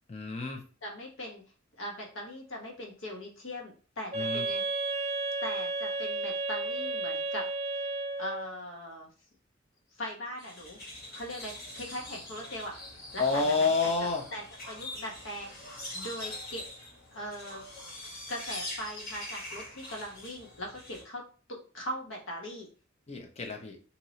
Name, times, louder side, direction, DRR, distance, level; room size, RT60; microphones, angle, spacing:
voice 1, 0.1-0.6 4.1-4.4 13.2-14.2 23.1-23.8, left 4 dB, 35° left, 3 dB, 0.5 m, -29 dB
voice 2, 0.8-1.4 1.8-4.6 5.4-7.5 8.2-9.1 9.9-10.8 11.1-12.7 13.1-13.9 14.3-15.5 15.9-16.6 17.1-17.6 18.3-21.2 21.5-22.7, equal, 80° left, 0 dB, 1.1 m, -40 dB
Wind instrument woodwind instrument, 4.1-8.6, right 3 dB, 35° right, 0.7 m, -32 dB
sound 1, 10.4-21.0, left 1 dB, 50° left, 1.3 m, -43 dB
3.0 x 2.8 x 2.7 m, 0.37 s
head